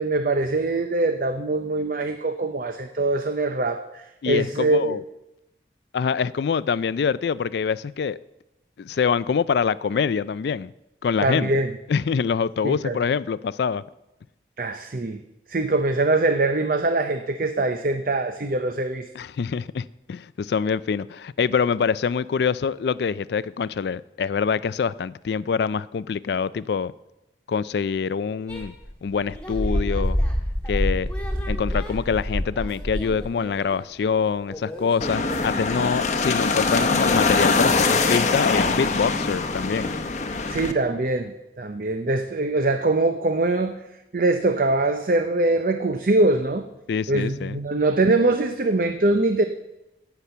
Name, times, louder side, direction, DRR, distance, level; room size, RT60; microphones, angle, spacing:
voice 1, 0.0-5.0 11.2-11.7 12.6-13.0 14.6-15.2 15.5-19.1 40.5-43.8 44.1-46.7 47.1-49.4, right 2 dB, 50° right, 0.6 m, -23 dB
voice 2, 4.2-5.0 5.9-8.2 8.8-10.7 11.0-11.5 11.9-13.8 19.2-26.9 27.5-28.7 29.0-30.2 30.7-31.1 31.5-39.9 46.9-47.6, left 6 dB, 65° left, 0.3 m, -25 dB
sound 1, 28.5-33.8 34.5-35.5, equal, 5° left, 1.7 m, -27 dB
sound 2, 35.0-40.7, left 4 dB, 40° left, 0.8 m, -23 dB
16.5 x 5.9 x 6.8 m
head